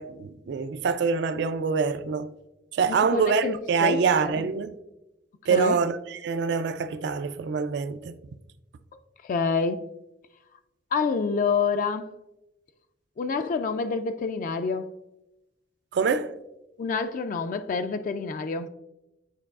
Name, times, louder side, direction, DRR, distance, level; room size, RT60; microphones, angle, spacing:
voice 1, 0.0-2.3 2.7-4.7 5.5-8.1 15.9-16.3, right 5 dB, 65° right, 0.4 m, -25 dB
voice 2, 2.9-4.4 5.5-5.7 8.9-9.8 10.9-12.1 13.2-14.9 16.8-18.7, left 5 dB, 45° left, 0.3 m, -28 dB
9.0 x 4.6 x 2.4 m
head